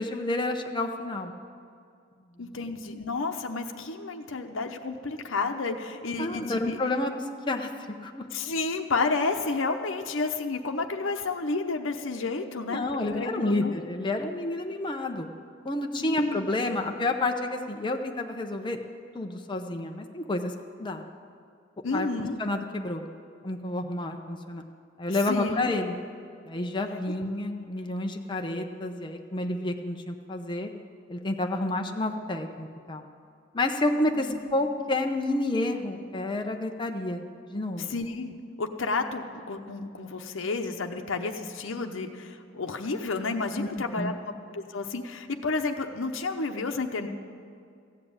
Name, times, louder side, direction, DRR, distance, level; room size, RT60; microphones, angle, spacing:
voice 1, 0.0-1.3 2.4-2.6 6.2-7.7 8.0-8.2 12.7-15.3 15.6-18.8 19.1-21.0 21.9-22.1 22.4-23.1 23.4-24.6 25.0-25.9 26.5-30.7 31.1-33.0 33.5-37.2 37.5-37.9 43.6-44.1, left 2 dB, 25° left, 3 dB, 0.7 m, -30 dB
voice 2, 2.4-6.8 8.3-13.7 16.0-16.5 21.8-22.4 25.3-25.7 34.2-34.4 37.8-47.1, left 3 dB, 90° left, 4 dB, 0.8 m, -31 dB
14.5 x 7.6 x 8.7 m, 2.3 s
head